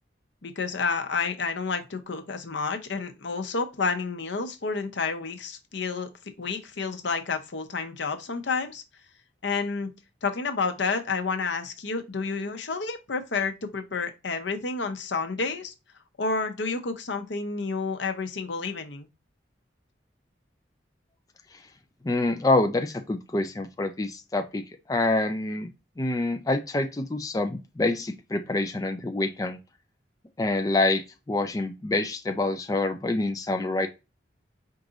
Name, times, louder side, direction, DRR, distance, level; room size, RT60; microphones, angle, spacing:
voice 1, 0.4-6.1 6.4-8.8 9.4-9.9 10.2-15.7 16.2-19.1, left 4 dB, 70° left, 0.8 m, -30 dB
voice 2, 22.0-25.7 26.0-29.6 30.4-33.9, left 2 dB, 20° left, 0.4 m, -26 dB
4.7 x 2.6 x 3.8 m
head